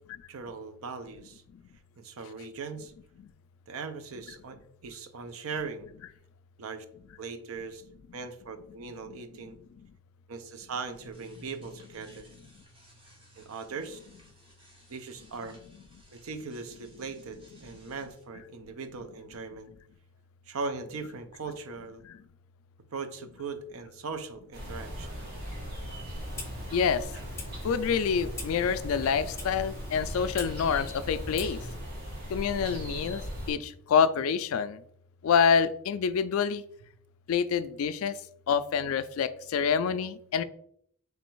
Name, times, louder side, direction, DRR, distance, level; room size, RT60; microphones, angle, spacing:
voice 1, 0.3-1.4 2.0-2.9 3.7-5.9 6.6-6.8 7.2-7.8 8.1-9.6 10.3-12.2 13.4-14.0 14.9-15.6 16.1-19.7 20.5-22.0 22.9-25.2, right 4 dB, 70° right, 10 dB, 0.5 m, -39 dB
sound 1, 10.7-18.2, equal, 25° right, 1.1 m, -57 dB
sound 2, 24.5-33.5, equal, 45° right, 1.5 m, -39 dB
Clock, 26.2-31.8, left 2 dB, 10° left, 0.7 m, -44 dB
voice 2, 26.7-27.0 27.6-31.6 32.3-33.2 33.5-34.8 35.2-36.6 37.3-38.2 38.5-40.4, left 6 dB, 70° left, 13 dB, 0.3 m, -27 dB
3.3 x 3.1 x 4.5 m, 0.68 s
head